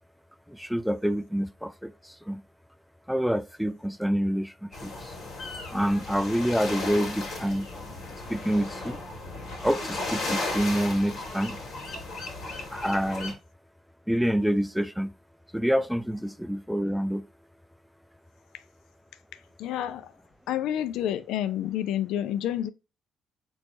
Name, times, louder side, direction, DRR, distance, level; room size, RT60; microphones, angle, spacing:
voice 1, 0.5-2.4 3.1-5.1 5.7-7.7 8.3-9.0 9.6-11.6 12.7-13.3 14.1-15.1 15.5-17.2, equal, ahead, 0.3 m, -27 dB
sound 1, 4.7-13.3, left 2 dB, 65° left, 2.0 m, -35 dB
voice 2, 19.6-20.1 20.5-22.7, left 11 dB, 90° left, 0.4 m, -29 dB
4.3 x 3.1 x 2.6 m
cardioid pair, 90°, 0 cm